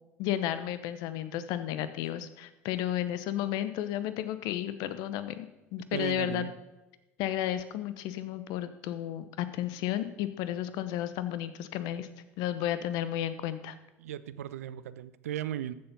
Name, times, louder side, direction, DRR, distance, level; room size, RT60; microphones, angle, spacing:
voice 1, 0.2-5.5 5.7-6.5 7.2-12.1 12.4-13.8, left 12 dB, 60° left, 12 dB, 0.9 m, -33 dB
voice 2, 5.9-6.5 14.0-15.7, right 11 dB, 75° right, 15 dB, 0.5 m, -36 dB
14.5 x 7.0 x 5.4 m, 1.0 s
figure-of-eight pair, 65°, 8 cm